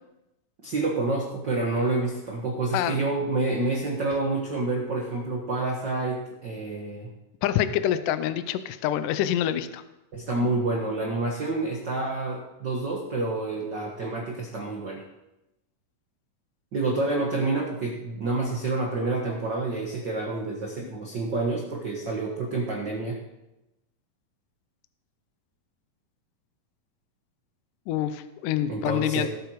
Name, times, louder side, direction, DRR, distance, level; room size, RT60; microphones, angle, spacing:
voice 1, 0.6-7.1 10.1-15.0 16.7-23.2 28.7-29.3, right 2 dB, 50° right, -1 dB, 1.3 m, -28 dB
voice 2, 2.7-3.0 7.4-9.8 27.9-29.3, left 11 dB, 75° left, 12 dB, 2.1 m, -26 dB
18.0 x 8.0 x 4.9 m, 0.94 s
omnidirectional pair, 4.2 m